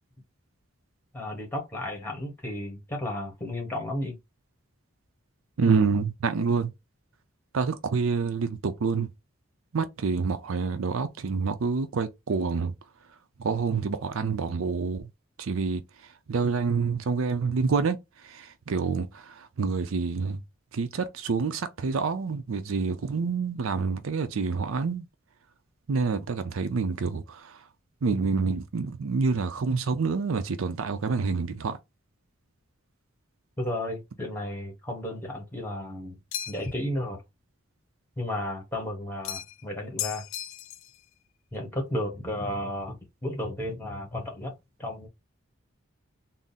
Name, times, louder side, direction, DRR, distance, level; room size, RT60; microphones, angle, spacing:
voice 1, 1.1-4.2 33.6-36.2 36.5-37.2 38.2-40.2 41.5-44.5 44.8-45.1, left 1 dB, 10° left, 1.3 m, -33 dB
voice 2, 5.6-6.7 7.5-9.1 9.7-12.7 13.4-15.1 15.4-15.8 16.3-20.4 20.7-25.1 25.9-27.6 28.0-31.8, right 4 dB, 80° right, 0.5 m, -27 dB
sound 1, 36.3-36.8 39.2-39.6 40.0-41.0, left 11 dB, 75° left, 0.4 m, -35 dB
3.6 x 2.0 x 4.1 m
head